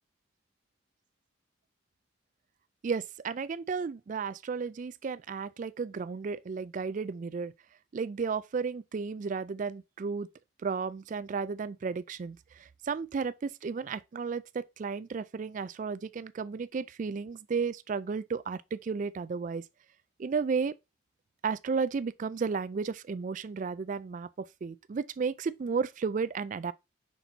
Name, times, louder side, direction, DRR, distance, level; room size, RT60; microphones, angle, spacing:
voice 1, 2.8-7.5 7.9-10.3 10.6-12.4 12.8-19.6 20.2-20.7 21.4-26.7, right 5 dB, 40° right, 0.3 m, -33 dB
6.0 x 4.0 x 3.9 m
head